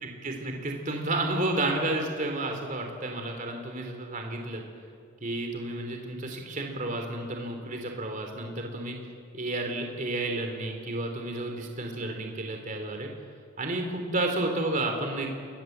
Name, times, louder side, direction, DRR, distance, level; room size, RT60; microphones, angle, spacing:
voice 1, 0.0-4.6 5.2-9.0 9.3-13.1 13.6-15.4, right 2 dB, 35° right, 3 dB, 3.2 m, -31 dB
29.0 x 21.5 x 8.0 m, 2.3 s
head